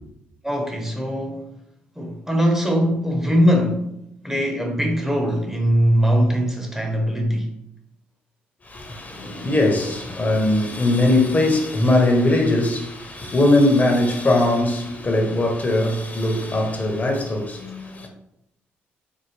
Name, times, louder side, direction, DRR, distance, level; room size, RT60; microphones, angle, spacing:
voice 1, 0.4-1.5 2.0-4.0 4.2-7.5, equal, 10° right, 0.9 m, -21 dB
voice 2, 8.6-18.1, left 1 dB, 35° left, 0.9 m, -20 dB
4.7 x 2.2 x 3.2 m
supercardioid pair, 55°, 5 cm